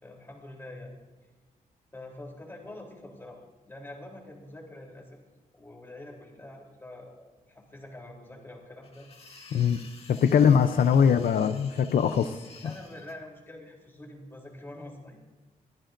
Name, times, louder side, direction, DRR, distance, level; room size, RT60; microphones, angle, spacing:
voice 1, 0.0-0.9 1.9-5.2 5.5-9.1 10.3-10.9 12.6-15.2, left 1 dB, 15° left, 0 dB, 3.4 m, -45 dB
sound 1, 8.8-13.1, left 3 dB, 45° left, 2.2 m, -51 dB
voice 2, 10.1-12.4, left 7 dB, 80° left, 10 dB, 0.6 m, -22 dB
23.0 x 14.5 x 2.6 m, 1.2 s
wide cardioid pair, 140°, 15 cm